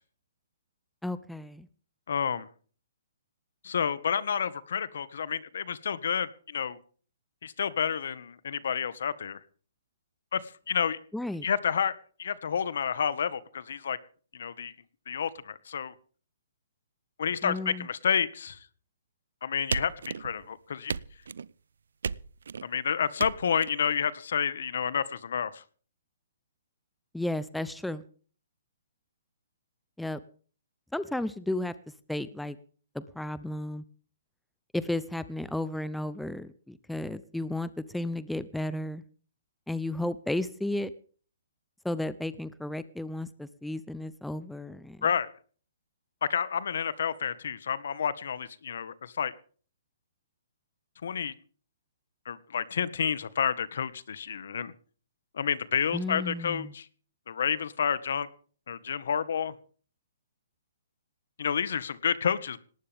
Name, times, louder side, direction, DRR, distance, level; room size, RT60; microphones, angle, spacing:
voice 1, 1.0-1.7 11.1-11.5 17.4-17.9 27.1-28.0 30.0-30.2 30.9-31.7 32.1-32.6 32.9-33.8 34.7-39.0 39.7-40.9 41.8-45.1 55.9-56.7, left 1 dB, ahead, 14 dB, 0.6 m, -33 dB
voice 2, 2.1-2.5 3.6-6.8 7.4-9.4 10.3-11.0 11.4-14.0 14.3-14.7 15.1-15.9 17.2-18.6 19.4-19.9 20.2-21.0 22.6-25.6 45.0-45.3 46.2-49.3 51.0-51.3 52.2-54.7 55.3-56.9 57.3-58.3 58.7-59.5 61.4-62.6, left 7 dB, 65° left, 17 dB, 1.5 m, -30 dB
sound 1, 19.7-20.5 20.9-21.5 22.0-22.7 23.2-23.7, right 6 dB, 80° right, 0.7 m, -34 dB
19.0 x 18.0 x 3.6 m, 0.42 s
hypercardioid pair, 165°, 0 cm